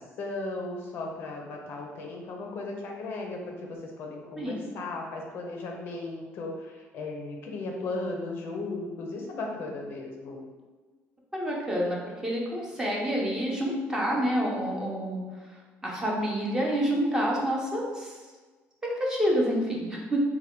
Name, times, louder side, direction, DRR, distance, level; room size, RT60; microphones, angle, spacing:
voice 1, 0.0-10.4, left 2 dB, 45° left, 1 dB, 0.5 m, -36 dB
voice 2, 11.3-15.2 15.8-18.2 18.8-20.2, equal, 10° right, -3 dB, 0.6 m, -28 dB
3.3 x 2.2 x 4.2 m, 1.4 s
cardioid pair, 165°, 5 cm